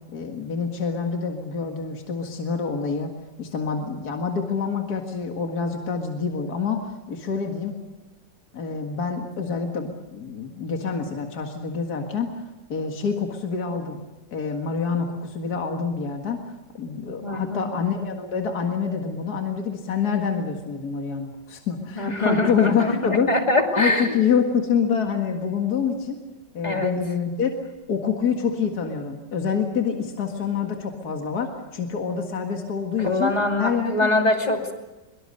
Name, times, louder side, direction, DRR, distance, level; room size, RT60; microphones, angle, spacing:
voice 1, 0.1-3.1 3.4-7.8 8.5-14.0 14.3-16.4 16.7-23.3 23.7-26.2 26.5-27.6 27.9-33.3 33.6-34.1, left 6 dB, 60° left, 3 dB, 2.3 m, -26 dB
voice 2, 17.2-17.7 22.0-24.1 26.6-26.9 33.0-34.7, left 2 dB, 25° left, 3 dB, 2.6 m, -23 dB
23.5 x 23.5 x 6.6 m, 1.1 s
omnidirectional pair, 1.9 m